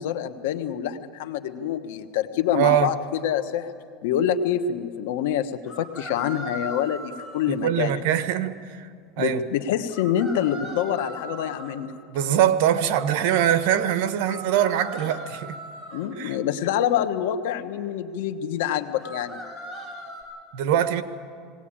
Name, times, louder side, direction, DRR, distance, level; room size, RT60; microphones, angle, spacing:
voice 1, 0.0-3.7 4.0-7.9 9.2-11.9 15.9-19.4, left 9 dB, 80° left, 1.2 m, -26 dB
voice 2, 2.5-2.9 7.5-8.9 9.2-9.4 12.1-15.6 16.2-16.4 20.5-21.0, right 10 dB, 65° right, 1.2 m, -23 dB
sound 1, 2.7-2.8 5.7-7.5 9.9-11.7 14.2-16.1 19.0-20.2, equal, ahead, 5.2 m, -38 dB
20.0 x 18.0 x 8.8 m
supercardioid pair, 140°, 0 cm